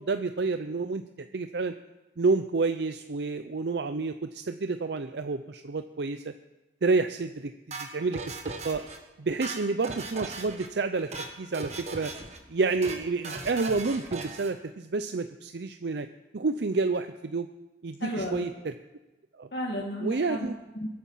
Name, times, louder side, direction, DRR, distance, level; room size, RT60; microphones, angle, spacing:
voice 1, 0.0-1.7 2.2-6.3 6.8-8.8 9.2-12.1 12.5-16.1 16.3-17.5 17.8-18.7 19.4-19.5 20.0-20.5, right 3 dB, 65° right, 9 dB, 0.5 m, -29 dB
sound 1, 7.7-9.0 9.3-10.7 11.0-11.3 11.5-12.4 12.7-13.0 13.2-14.5, right 3 dB, 35° right, 1.6 m, -38 dB
voice 2, 18.0-18.5 19.5-20.9, equal, 65° left, -2 dB, 1.9 m, -33 dB
22.5 x 8.8 x 5.6 m, 1.1 s
head